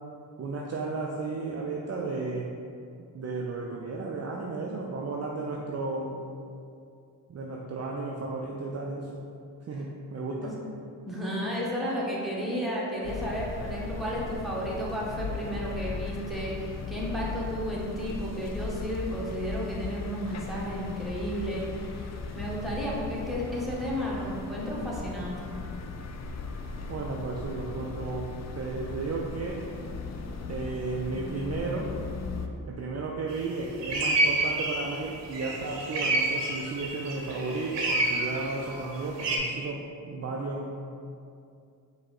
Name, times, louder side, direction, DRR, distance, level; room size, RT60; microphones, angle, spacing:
voice 1, 0.4-2.5 3.1-6.2 7.3-9.1 9.7-10.6 26.9-29.6 30.5-31.9 32.7-40.7, right 3 dB, 35° right, -2 dB, 0.5 m, -34 dB
voice 2, 11.1-22.0 22.3-25.3, equal, ahead, -6 dB, 1.3 m, -33 dB
sound 1, 13.0-32.5, left 4 dB, 40° left, 0.5 m, -37 dB
sound 2, 33.3-33.5 33.8-39.4, right 2 dB, 75° right, 0.8 m, -29 dB
5.0 x 2.3 x 3.7 m, 2.5 s
supercardioid pair, 45°, 43 cm